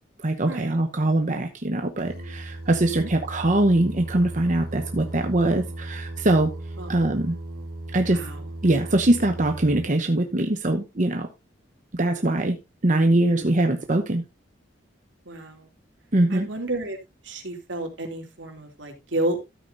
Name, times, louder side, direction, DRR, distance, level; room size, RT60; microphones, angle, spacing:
voice 1, 0.2-6.5 6.9-7.3 7.9-8.2 8.6-11.3 11.9-12.6 12.8-14.2 16.1-16.5, right 1 dB, 45° right, 0.9 m, -22 dB
Singing, 2.0-9.9, right 1 dB, 60° right, 3.3 m, -36 dB
voice 2, 2.8-3.1 6.8-6.9 8.1-8.4 13.3-13.5 15.3-15.7 16.3-17.0 17.2-19.5, right 1 dB, 80° right, 2.7 m, -31 dB
13.0 x 8.7 x 2.6 m
head